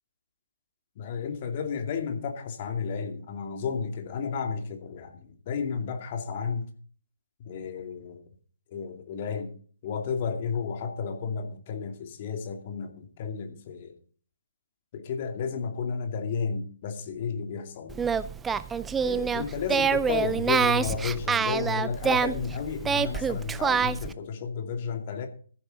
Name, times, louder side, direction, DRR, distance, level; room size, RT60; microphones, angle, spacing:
voice 1, 1.0-6.7 7.4-8.2 8.7-9.5 9.8-14.0 14.9-18.0 19.0-25.3, left 6 dB, 40° left, 5 dB, 2.4 m, -32 dB
Singing, 17.9-24.1, right 6 dB, 10° right, 0.5 m, -26 dB
14.5 x 10.0 x 3.9 m, 0.43 s
figure-of-eight pair, 135°, 0 cm